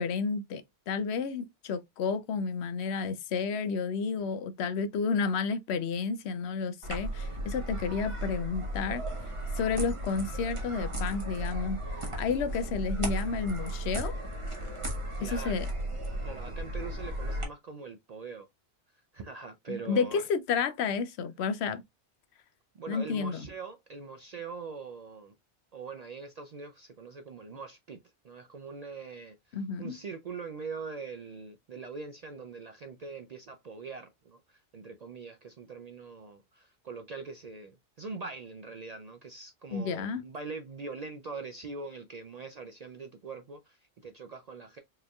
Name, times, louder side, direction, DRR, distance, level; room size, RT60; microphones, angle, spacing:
voice 1, 0.0-14.1 15.2-15.7 19.7-21.8 22.9-23.4 29.5-30.0 39.7-40.2, left 5 dB, 75° left, 0.8 m, -31 dB
sound 1, 6.8-17.4, right 1 dB, 30° right, 1.2 m, -35 dB
voice 2, 15.2-15.7 16.2-18.5 18.9-20.2 22.7-25.3 25.7-44.8, right 4 dB, 60° right, 0.4 m, -42 dB
4.7 x 3.1 x 2.3 m
omnidirectional pair, 1.2 m